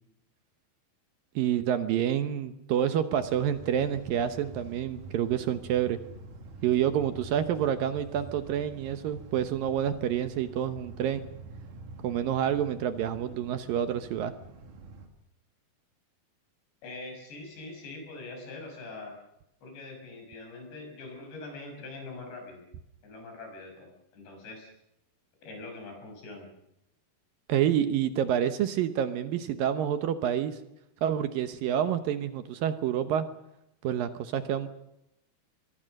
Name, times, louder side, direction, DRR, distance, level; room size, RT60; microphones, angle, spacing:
voice 1, 1.4-6.0 6.6-11.3 12.0-14.3 27.5-30.6 31.0-33.3 33.8-34.7, right 10 dB, 70° right, 10 dB, 2.4 m, -28 dB
sound 1, 3.2-15.1, right 2 dB, 55° right, 3.6 m, -46 dB
voice 2, 16.8-19.1 19.6-22.6 23.0-24.7 25.4-26.5, left 3 dB, 90° left, 3 dB, 8.3 m, -43 dB
24.0 x 23.0 x 6.6 m, 0.86 s
omnidirectional pair, 4.8 m